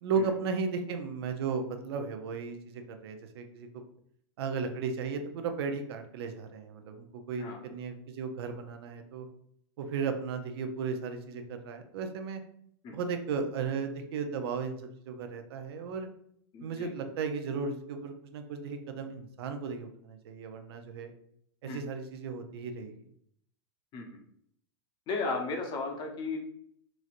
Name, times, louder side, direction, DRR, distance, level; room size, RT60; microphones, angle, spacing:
voice 1, 0.0-3.7 4.4-9.3 9.8-12.4 12.9-16.1 16.6-21.1 21.6-23.0, right 5 dB, 70° right, 6 dB, 0.5 m, -35 dB
voice 2, 16.5-16.9 21.6-21.8 23.9-24.1 25.1-26.4, left 3 dB, 35° left, 2 dB, 0.7 m, -35 dB
3.1 x 2.6 x 2.5 m, 0.69 s
hypercardioid pair, 120°, 14 cm